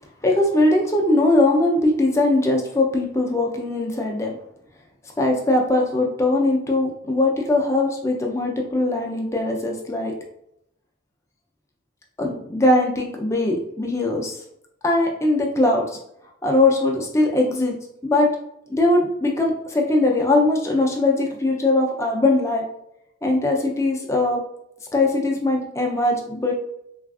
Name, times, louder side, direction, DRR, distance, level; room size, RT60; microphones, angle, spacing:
voice 1, 0.2-4.3 5.2-10.1 12.2-14.4 14.8-16.0 16.4-17.8 18.0-18.3 18.7-22.6 23.2-24.4 24.9-26.5, left 2 dB, 15° left, 0 dB, 0.4 m, -20 dB
3.3 x 2.4 x 2.3 m, 0.77 s
head